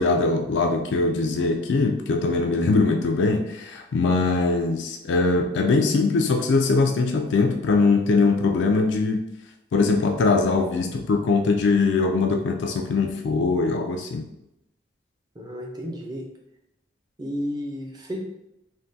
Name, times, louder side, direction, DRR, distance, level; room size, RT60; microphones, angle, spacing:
voice 1, 0.0-9.2 9.7-14.3, left 3 dB, 75° left, 4 dB, 0.3 m, -22 dB
voice 2, 15.3-16.3 17.2-18.2, equal, 20° right, -1 dB, 0.5 m, -32 dB
3.5 x 2.2 x 2.6 m, 0.85 s
head